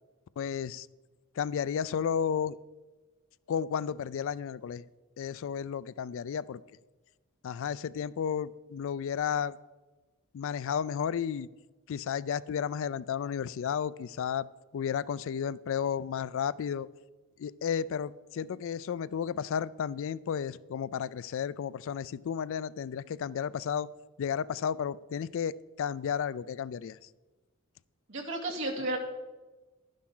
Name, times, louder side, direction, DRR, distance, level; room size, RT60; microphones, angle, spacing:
voice 1, 0.4-0.9 1.4-2.6 3.5-4.8 5.2-6.6 7.4-9.6 10.3-11.5 11.9-14.5 14.7-16.9 17.4-23.9 24.2-27.0, left 7 dB, 65° left, 19 dB, 0.3 m, -33 dB
voice 2, 28.1-29.0, right 2 dB, 65° right, -1 dB, 2.4 m, -32 dB
11.5 x 10.5 x 3.8 m, 1.2 s
head